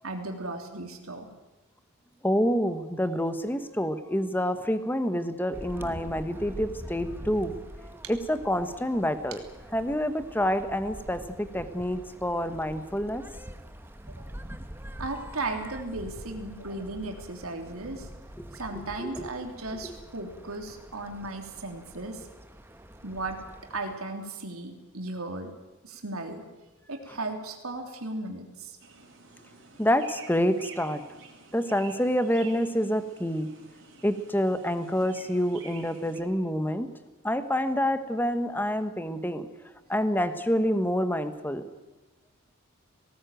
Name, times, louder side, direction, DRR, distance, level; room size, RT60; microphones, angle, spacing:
voice 1, 0.0-1.3 14.1-14.2 15.0-18.1 18.5-22.3 23.0-23.4 23.7-25.5 25.8-26.4 26.9-28.8, right 2 dB, 85° right, 3 dB, 3.2 m, -36 dB
voice 2, 2.2-7.6 8.1-9.4 9.7-13.2 18.4-18.5 18.7-19.3 29.8-31.0 31.5-33.5 34.0-36.9 37.2-41.7, equal, 10° left, 10 dB, 1.2 m, -27 dB
sound 1, 5.5-24.0, equal, 10° right, 1.0 m, -45 dB
sound 2, 28.8-36.2, right 5 dB, 60° right, 5.4 m, -50 dB
19.0 x 18.0 x 9.2 m, 1.1 s
head